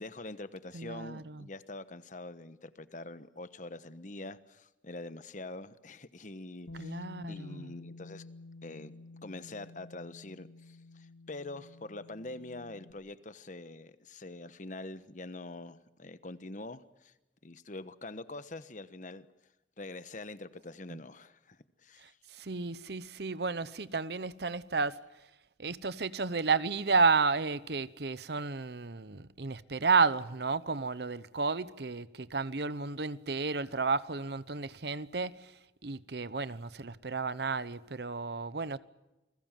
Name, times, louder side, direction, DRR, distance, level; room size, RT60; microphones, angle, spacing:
voice 1, 0.0-8.3 8.6-8.9 9.2-17.1 17.4-19.3 19.8-22.2, left 2 dB, 45° left, 1.2 m, -45 dB
voice 2, 0.7-1.5 6.7-7.7 20.9-21.0 22.0-25.0 25.6-35.5 35.8-38.8, right 4 dB, 65° right, 0.9 m, -32 dB
Bass guitar, 6.7-12.9, left 2 dB, 80° left, 1.7 m, -50 dB
29.0 x 21.0 x 7.6 m
head